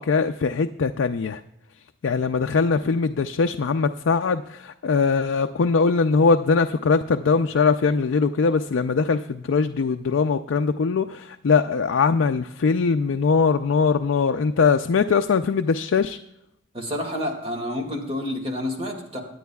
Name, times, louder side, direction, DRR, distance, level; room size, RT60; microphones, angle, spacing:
voice 1, 0.0-1.4 2.0-16.2, left 5 dB, 75° left, 6 dB, 0.4 m, -21 dB
voice 2, 16.7-19.2, left 1 dB, 30° right, 2 dB, 2.1 m, -29 dB
23.0 x 9.2 x 2.3 m, 0.78 s
head